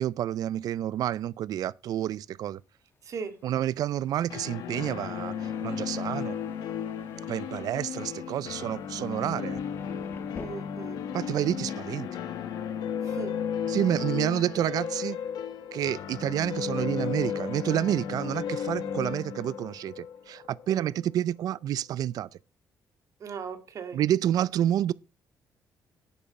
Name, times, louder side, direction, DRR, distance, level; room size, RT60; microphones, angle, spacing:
voice 1, 0.0-2.6 3.4-6.3 7.3-9.6 11.1-12.1 13.7-15.2 15.7-22.3 23.9-24.9, right 11 dB, 70° right, 0.4 m, -29 dB
Thunder, 2.3-10.5, left 5 dB, 35° left, 1.1 m, -53 dB
voice 2, 3.0-3.4 10.4-11.0 13.0-13.3 20.7-20.9 23.2-24.0, right 6 dB, 55° right, 2.1 m, -38 dB
sound 1, 4.3-21.0, left 7 dB, 85° left, 1.4 m, -34 dB
11.0 x 8.7 x 4.2 m
cardioid pair, 130°, 7 cm